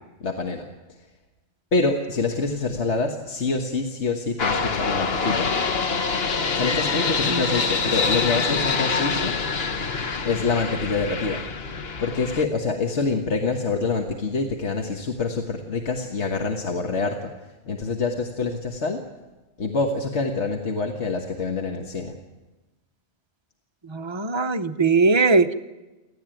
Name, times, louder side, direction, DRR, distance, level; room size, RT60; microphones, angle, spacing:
voice 1, 0.2-0.7 1.7-5.5 6.5-9.4 10.2-11.4 12.0-17.3 17.7-19.0 19.6-22.2, left 3 dB, 75° left, 3 dB, 1.7 m, -26 dB
sound 1, 4.4-12.4, left 4 dB, 60° left, 1.4 m, -25 dB
voice 2, 23.9-25.5, right 4 dB, 30° right, 7 dB, 0.7 m, -20 dB
29.5 x 12.0 x 9.1 m, 1.1 s
omnidirectional pair, 1.2 m